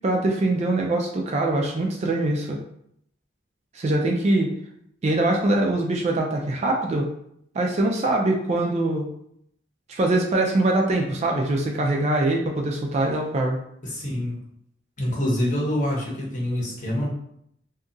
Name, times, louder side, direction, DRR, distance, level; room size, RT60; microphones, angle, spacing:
voice 1, 0.0-2.6 3.7-4.5 5.0-7.1 7.5-9.1 9.9-13.6, right 2 dB, 35° right, 1 dB, 0.3 m, -23 dB
voice 2, 13.8-14.4 15.0-17.1, left 1 dB, 40° left, -4 dB, 0.8 m, -26 dB
2.7 x 2.3 x 2.5 m, 0.72 s
head